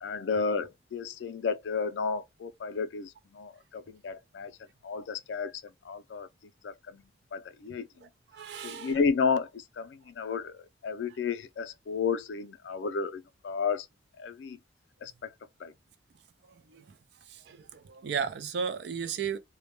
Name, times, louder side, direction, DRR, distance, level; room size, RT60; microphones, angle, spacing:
voice 1, 0.0-4.6 4.8-6.3 6.6-7.0 7.3-7.9 8.6-13.9 14.2-14.6 15.0-15.3 15.6-15.7, left 5 dB, 75° left, 0.4 m, -32 dB
voice 2, 8.0-9.0 16.5-17.0 17.3-19.4, right 6 dB, 65° right, 0.4 m, -35 dB
2.1 x 2.1 x 2.8 m
head